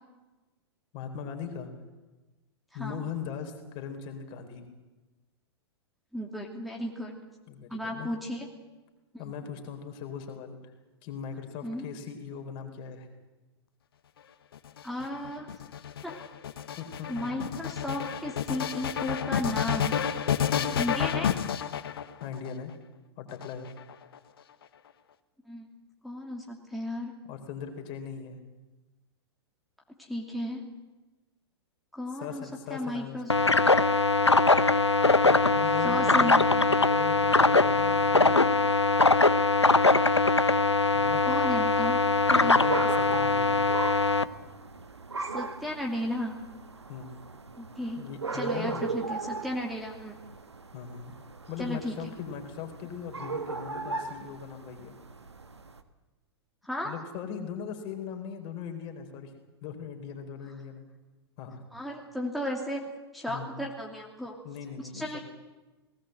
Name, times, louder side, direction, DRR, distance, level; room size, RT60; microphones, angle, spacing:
voice 1, 0.9-1.7 2.7-4.7 7.5-8.1 9.2-10.7 11.0-13.1 16.8-17.1 17.4-17.5 20.5-20.8 22.2-22.7 23.2-23.7 27.3-28.4 32.2-33.4 35.3-38.5 40.9-41.2 42.6-42.8 43.1-43.7 46.9-47.1 48.0-48.9 50.7-51.2 51.5-54.9 56.8-59.3 59.6-60.8 61.4-61.6 63.3-63.6 64.4-65.2, left 7 dB, 35° left, 5 dB, 4.0 m, -39 dB
voice 2, 6.1-7.2 7.7-8.5 9.1-9.3 11.6-11.9 14.8-15.5 16.0-16.1 17.1-20.0 20.8-21.4 25.5-25.7 26.0-27.2 30.0-30.6 31.9-33.3 35.8-36.5 41.2-42.0 42.3-42.6 45.3-46.4 47.6-48.1 48.3-50.2 51.6-52.0 56.6-56.9 61.7-62.8 63.1-64.4 64.9-65.2, left 1 dB, ahead, -2 dB, 2.7 m, -34 dB
sound 1, 14.5-22.5 23.3-24.2, left 8 dB, 60° left, 1.3 m, -30 dB
sound 2, 33.3-44.2, left 3 dB, 90° left, 0.8 m, -22 dB
sound 3, 41.0-55.8, right 4 dB, 80° right, 1.5 m, -38 dB
19.0 x 18.0 x 7.9 m, 1.2 s
figure-of-eight pair, 100°, 14 cm